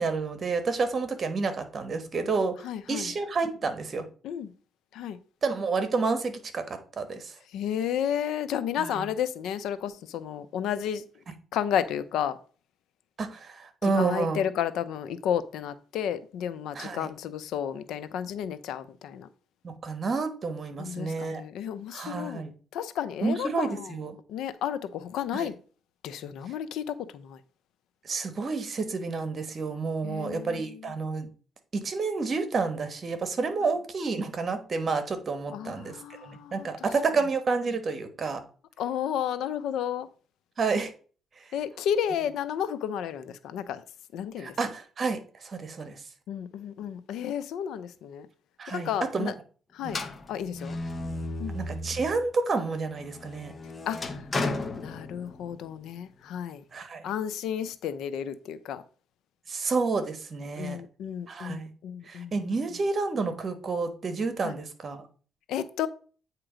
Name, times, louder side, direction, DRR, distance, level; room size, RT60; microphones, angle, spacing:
voice 1, 0.0-2.6 2.9-4.1 5.4-7.3 8.8-9.1 13.2-14.4 16.7-17.1 19.6-21.4 21.9-22.5 23.2-24.2 25.3-25.5 28.0-31.3 31.7-36.0 36.2-38.4 40.6-40.9 44.4-46.0 48.6-49.3 49.8-50.0 51.5-53.5 56.7-57.1 59.5-60.8 61.3-61.7 62.0-65.0, right 4 dB, 40° right, 1.2 m, -30 dB
voice 2, 2.6-3.1 4.2-4.5 4.9-5.2 7.5-11.0 11.5-12.4 13.8-19.3 20.8-22.4 22.7-23.9 24.3-25.5 26.0-27.4 30.0-30.7 35.5-36.7 38.8-40.1 41.5-43.8 44.1-44.5 46.3-48.3 48.7-49.3 49.8-50.0 50.3-50.8 51.4-51.6 53.9-54.0 54.8-56.6 57.0-58.8 60.6-62.3 64.4-64.5 65.5-65.9, left 9 dB, 80° left, 0.5 m, -32 dB
sound 1, 49.9-52.3 52.7-55.6, left 2 dB, 30° left, 0.9 m, -34 dB
8.8 x 3.0 x 4.9 m
cardioid pair, 85°, 0 cm